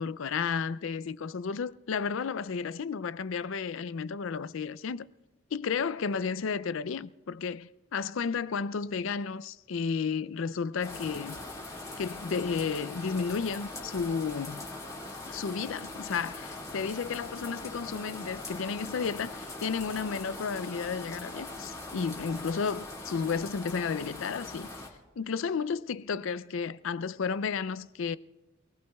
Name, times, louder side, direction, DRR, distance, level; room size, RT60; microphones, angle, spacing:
voice 1, 0.0-5.1 5.5-11.4 12.0-14.6 15.3-24.7 25.2-28.2, left 5 dB, 65° left, 0.4 m, -32 dB
sound 1, 10.8-24.9, left 2 dB, 15° left, 2.2 m, -41 dB
28.0 x 19.0 x 2.3 m
head